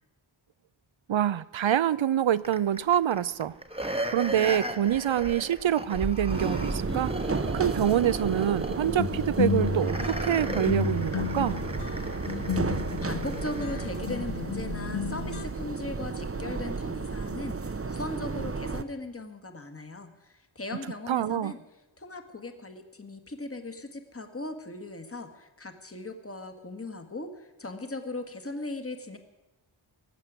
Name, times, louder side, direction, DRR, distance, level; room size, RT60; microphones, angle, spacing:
voice 1, 1.1-3.5 4.1-11.6 21.1-21.5, right 10 dB, 70° right, 0.6 m, -26 dB
sound 1, 2.4-13.9 14.4-14.5, right 1 dB, 10° right, 1.2 m, -36 dB
sound 2, 6.3-18.8, right 4 dB, 30° right, 0.7 m, -33 dB
sound 3, 9.0-15.4, left 6 dB, 80° left, 1.1 m, -32 dB
voice 2, 13.0-21.6 22.0-29.2, left 2 dB, 30° left, 1.7 m, -38 dB
19.0 x 7.5 x 9.3 m
wide cardioid pair, 65°, 49 cm